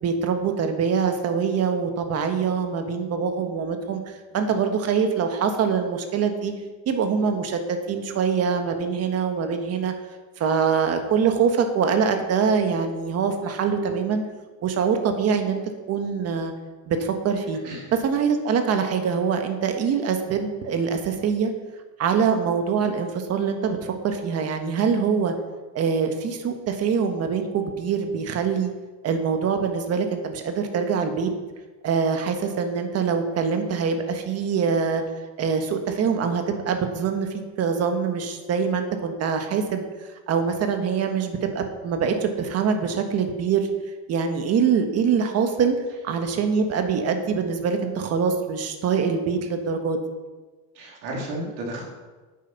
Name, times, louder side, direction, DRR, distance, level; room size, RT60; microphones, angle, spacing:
voice 1, 0.0-6.5 6.8-9.9 10.4-14.2 14.6-15.6 15.9-16.5 16.9-17.6 18.0-21.5 22.0-25.3 25.7-28.7 29.0-31.3 31.8-35.0 35.4-37.3 37.6-39.8 40.3-43.7 44.1-45.7 46.0-50.0, right 6 dB, 35° right, 6 dB, 1.4 m, -24 dB
voice 2, 50.7-51.9, right 1 dB, 70° right, -2 dB, 3.7 m, -33 dB
9.5 x 9.1 x 5.9 m, 1.3 s
cardioid pair, 160°, 41 cm